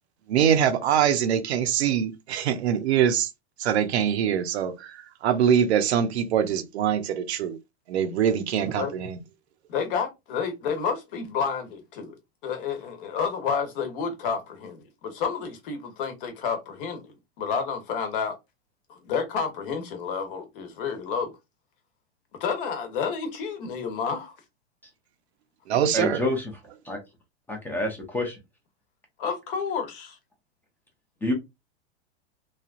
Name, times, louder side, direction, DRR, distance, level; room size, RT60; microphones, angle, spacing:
voice 1, 0.3-3.3 3.6-7.6 7.9-9.2 25.7-26.2, right 8 dB, 75° right, 0.8 m, -23 dB
voice 2, 9.7-12.2 12.4-18.4 18.9-21.3 22.4-24.3 29.2-30.2, left 6 dB, 55° left, 1.1 m, -30 dB
voice 3, 25.9-26.5 26.8-27.0 27.5-28.4 31.2-31.3, left 1 dB, 5° left, 0.7 m, -27 dB
3.2 x 2.3 x 2.5 m
hypercardioid pair, 135°, 33 cm